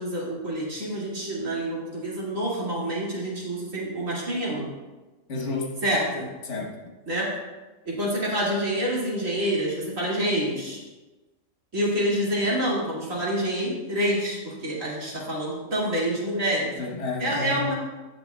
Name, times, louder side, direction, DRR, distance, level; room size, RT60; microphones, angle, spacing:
voice 1, 0.0-4.7 5.8-6.2 7.1-7.3 7.9-10.8 11.7-16.7 17.2-17.7, right 1 dB, 70° right, -5 dB, 2.7 m, -27 dB
voice 2, 5.3-5.8 6.4-6.8 16.8-17.7, left 3 dB, 60° left, 0 dB, 1.5 m, -31 dB
17.0 x 6.1 x 2.3 m, 1.2 s
omnidirectional pair, 1.4 m